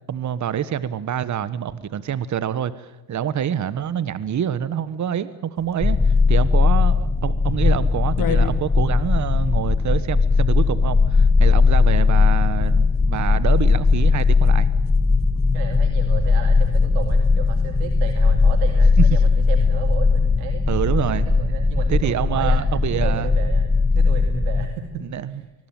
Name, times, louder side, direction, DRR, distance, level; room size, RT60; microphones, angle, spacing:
voice 1, 0.1-14.7 19.0-19.1 20.7-21.3 21.9-23.4 25.0-25.3, right 9 dB, 35° right, 16 dB, 1.4 m, -26 dB
sound 1, 5.5-20.5, left 6 dB, 40° left, 3.2 m, -40 dB
sound 2, 5.8-24.7, left 4 dB, 10° left, 2.0 m, -18 dB
voice 2, 15.5-20.7 21.2-22.6 22.9-25.4, right 7 dB, 75° right, 6 dB, 2.5 m, -33 dB
24.5 x 21.5 x 9.3 m, 0.98 s
hypercardioid pair, 80°, 48 cm